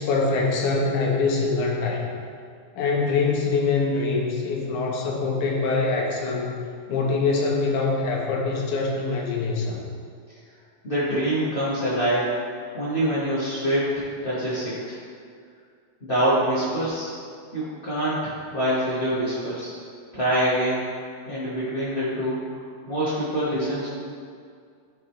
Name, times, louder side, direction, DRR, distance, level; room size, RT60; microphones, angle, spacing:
voice 1, 0.0-2.1 2.8-9.8, left 4 dB, 75° left, -1 dB, 2.4 m, -24 dB
voice 2, 10.8-12.4 12.7-15.0 16.1-17.1 17.5-19.7 20.1-20.9 21.3-22.4 22.8-23.9, right 1 dB, 45° left, -10 dB, 0.7 m, -25 dB
12.0 x 5.4 x 3.2 m, 2.2 s
omnidirectional pair, 3.5 m